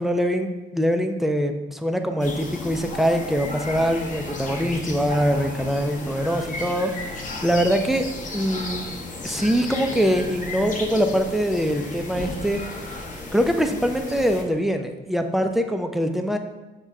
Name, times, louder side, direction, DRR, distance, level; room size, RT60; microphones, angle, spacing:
voice 1, 0.0-8.1 8.3-8.9 9.2-13.0 13.3-16.4, equal, ahead, 6 dB, 0.3 m, -23 dB
sound 1, 2.2-14.4, left 2 dB, 40° left, 0.8 m, -34 dB
5.9 x 2.2 x 3.5 m, 1.1 s
cardioid pair, 90°, 20 cm